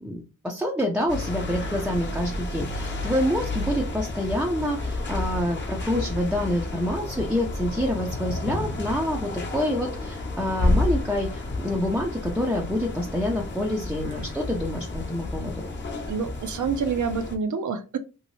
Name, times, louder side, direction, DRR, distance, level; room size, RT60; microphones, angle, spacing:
voice 1, 0.0-15.6, equal, 5° right, 0 dB, 0.5 m, -27 dB
sound 1, 1.1-17.4, left 2 dB, 35° left, 0.8 m, -31 dB
sound 2, 7.6-10.9 11.2-13.6 13.9-14.0 14.4-16.1, left 4 dB, 80° left, 0.6 m, -40 dB
voice 2, 16.1-18.0, right 5 dB, 70° right, 8 dB, 0.6 m, -27 dB
3.1 x 2.8 x 3.0 m, 0.31 s
wide cardioid pair, 140°, 31 cm